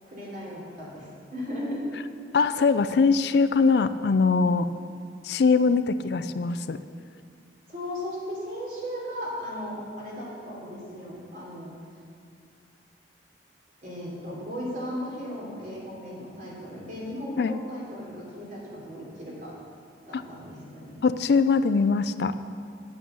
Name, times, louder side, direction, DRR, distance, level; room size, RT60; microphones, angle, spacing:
voice 1, 0.0-1.9 7.7-11.7 13.8-19.5 20.1-21.0, equal, 50° right, -4 dB, 3.2 m, -36 dB
voice 2, 2.3-4.7 5.2-6.8 17.4-17.6 20.1-20.2 21.0-22.3, left 4 dB, 65° left, 12 dB, 0.4 m, -22 dB
8.9 x 8.7 x 6.8 m, 2.2 s
head